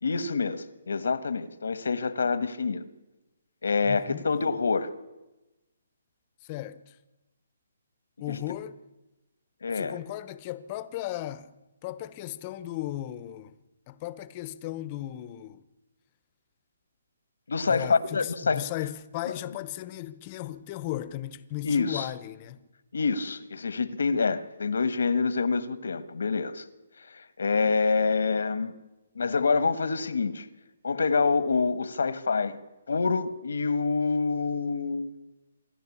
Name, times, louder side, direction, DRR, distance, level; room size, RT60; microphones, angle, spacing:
voice 1, 0.0-2.8 3.6-4.9 8.3-8.4 9.6-10.0 17.5-18.6 21.6-22.1 22.9-26.6 27.1-28.7 29.1-30.5 30.8-32.6 32.9-35.1, left 4 dB, 90° left, 1.5 m, -26 dB
voice 2, 3.8-4.3 6.4-7.0 8.2-8.7 9.7-11.5 11.8-13.5 13.9-15.6 17.6-22.6, left 14 dB, 25° left, 0.9 m, -36 dB
27.0 x 11.5 x 8.6 m
hypercardioid pair, 165°, 0 cm